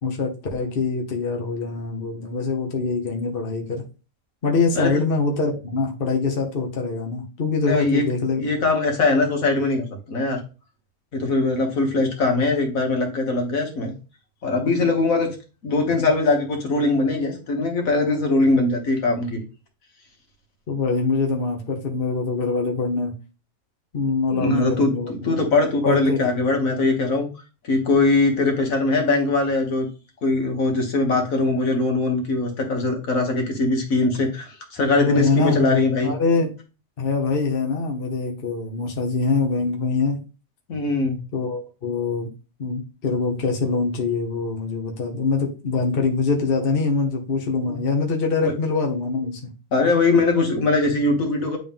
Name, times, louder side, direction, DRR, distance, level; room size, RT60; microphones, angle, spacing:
voice 1, 0.0-3.8 4.4-8.4 20.7-23.1 23.9-25.4 25.8-26.2 34.9-36.5 37.0-40.2 41.3-42.3 42.6-49.5, left 4 dB, 40° left, 0 dB, 1.3 m, -24 dB
voice 2, 7.7-8.0 8.4-10.4 11.1-13.9 14.4-15.3 15.6-19.4 24.3-27.3 27.6-29.9 30.2-36.1 40.7-41.2 47.6-47.8 48.4-48.5 49.7-51.6, left 3 dB, 70° left, 2 dB, 1.9 m, -21 dB
9.0 x 3.8 x 3.6 m, 0.33 s
omnidirectional pair, 1.5 m